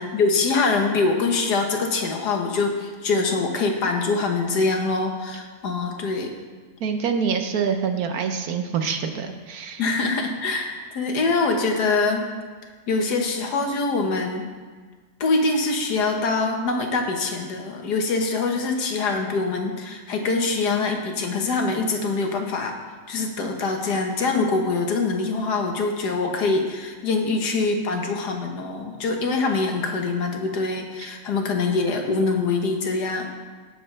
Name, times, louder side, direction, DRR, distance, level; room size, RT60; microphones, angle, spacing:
voice 1, 0.0-6.3 9.8-12.2 12.9-14.5 15.2-22.8 23.1-33.3, left 3 dB, 75° left, 3 dB, 1.7 m, -24 dB
voice 2, 6.8-9.9 31.0-31.1, right 6 dB, 65° right, 6 dB, 1.2 m, -26 dB
17.0 x 6.9 x 3.3 m, 1.5 s
omnidirectional pair, 1.8 m